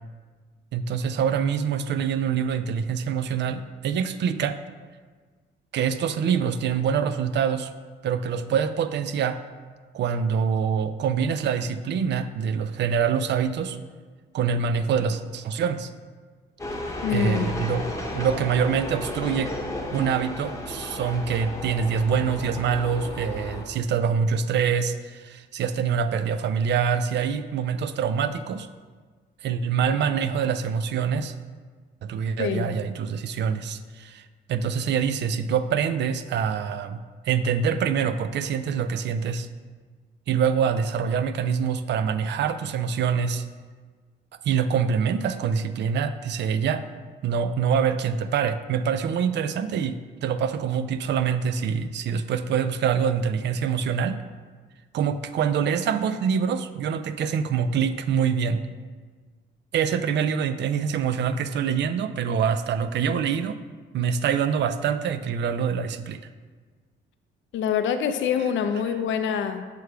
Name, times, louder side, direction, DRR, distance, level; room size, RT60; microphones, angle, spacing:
voice 1, 0.7-4.6 5.7-7.7 8.0-9.4 9.9-13.8 14.3-15.9 17.1-17.8 18.1-19.5 19.9-28.7 29.4-31.3 32.0-37.0 37.3-39.5 40.3-43.4 44.4-46.8 47.2-54.2 54.9-58.6 59.7-63.6 63.9-66.2, right 7 dB, 65° right, 11 dB, 0.4 m, -25 dB
sound 1, 16.6-23.6, left 1 dB, 15° left, 0.9 m, -34 dB
voice 2, 17.0-17.6 32.4-32.7 67.5-69.6, left 8 dB, 75° left, 9 dB, 0.5 m, -25 dB
6.8 x 3.4 x 4.6 m, 1.5 s
cardioid pair, 90°, 20 cm